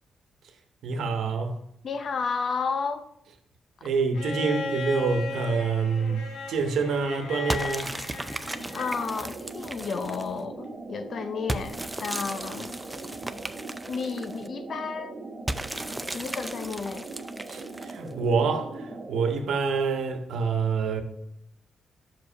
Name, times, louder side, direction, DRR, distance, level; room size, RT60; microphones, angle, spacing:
voice 1, 0.8-1.6 3.8-7.9 17.5-21.0, right 5 dB, 75° right, 1.1 m, -27 dB
voice 2, 1.8-3.1 8.7-12.8 13.9-15.2 16.1-17.1, left 5 dB, 50° left, 0.6 m, -32 dB
Bowed string instrument, 4.1-9.2 10.6-10.7, left 3 dB, 80° left, 1.1 m, -36 dB
sound 1, 7.5-10.4 11.5-14.5 15.5-18.1, right 1 dB, 10° right, 0.5 m, -35 dB
sound 2, 8.5-19.3, right 3 dB, 40° right, 1.1 m, -40 dB
6.0 x 5.1 x 5.7 m
cardioid pair, 105°, 0 cm